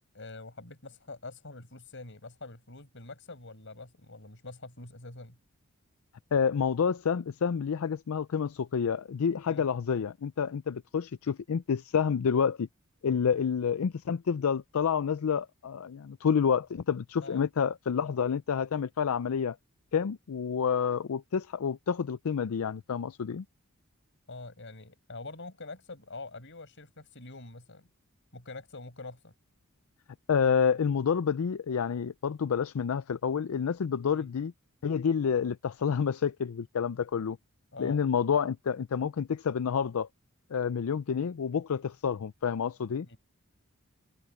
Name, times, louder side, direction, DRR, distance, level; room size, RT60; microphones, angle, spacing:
voice 1, 0.1-5.4 9.5-9.6 17.2-17.4 24.3-27.9 28.3-29.3 34.1-34.3 37.7-38.0 43.0-43.2, left 3 dB, 60° left, 6.2 m, -45 dB
voice 2, 6.3-12.7 13.0-19.6 19.9-23.4 30.3-34.5 34.8-37.4 37.8-40.1 40.5-43.1, left 7 dB, 75° left, 0.4 m, -29 dB
head